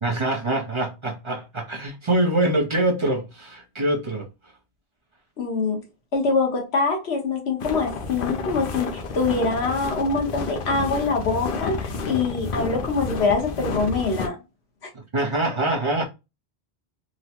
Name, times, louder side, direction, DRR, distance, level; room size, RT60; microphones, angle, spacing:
voice 1, 0.0-4.3 15.1-16.1, right 1 dB, 35° right, 0.6 m, -24 dB
voice 2, 5.4-5.8 6.1-14.4, left 4 dB, 90° left, 1.4 m, -24 dB
sound 1, 7.6-14.3, left 4 dB, 65° left, 0.8 m, -30 dB
3.7 x 2.1 x 2.9 m
omnidirectional pair, 1.1 m